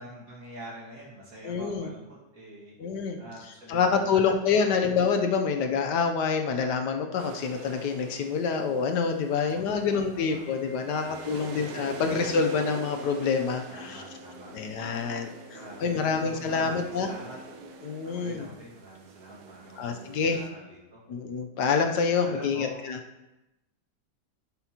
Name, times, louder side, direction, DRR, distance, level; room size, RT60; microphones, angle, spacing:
voice 1, 0.0-2.8 3.2-4.3 4.6-4.8 9.3-10.4 10.8-11.5 11.8-12.2 13.7-14.5 15.5-17.4 18.0-21.0 22.1-22.8, right 1 dB, 55° right, -4 dB, 2.4 m, -46 dB
voice 2, 1.4-1.9 2.8-3.2 3.7-14.0 14.5-17.1 17.8-18.5 19.8-20.4 21.1-23.0, left 5 dB, 75° left, 5 dB, 1.3 m, -27 dB
sound 1, 7.2-20.5, right 5 dB, 80° right, 1.4 m, -45 dB
sound 2, 10.3-18.3, left 2 dB, 50° left, 2.3 m, -49 dB
11.5 x 5.9 x 2.9 m, 0.99 s
omnidirectional pair, 1.8 m